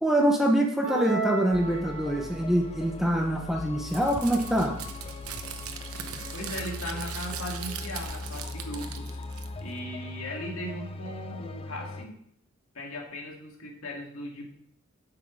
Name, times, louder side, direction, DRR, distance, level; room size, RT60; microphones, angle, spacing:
voice 1, 0.0-4.8, right 1 dB, ahead, 1 dB, 0.8 m, -25 dB
sound 1, 0.8-2.5, right 3 dB, 50° right, 1.1 m, -33 dB
sound 2, 1.5-12.1, left 2 dB, 25° left, 0.5 m, -40 dB
Crumpling crinkling, 3.9-9.8, right 8 dB, 90° right, 0.9 m, -40 dB
voice 2, 6.3-9.2 9.6-12.2 12.7-14.5, left 1 dB, 75° left, 0 dB, 2.1 m, -38 dB
8.2 x 6.0 x 5.3 m, 0.69 s
head